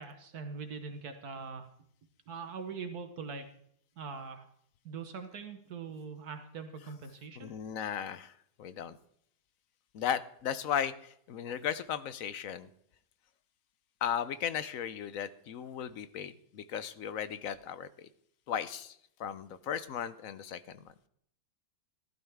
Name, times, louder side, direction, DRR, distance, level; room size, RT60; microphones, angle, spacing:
voice 1, 0.0-1.7 2.3-3.4 4.0-4.5 4.8-7.5, right 5 dB, 65° right, 7 dB, 1.5 m, -42 dB
voice 2, 7.4-8.3 8.6-9.0 9.9-12.7 14.0-17.9 18.5-20.8, left 9 dB, 65° left, 14 dB, 0.9 m, -36 dB
14.5 x 12.0 x 3.5 m, 0.69 s
omnidirectional pair, 1.8 m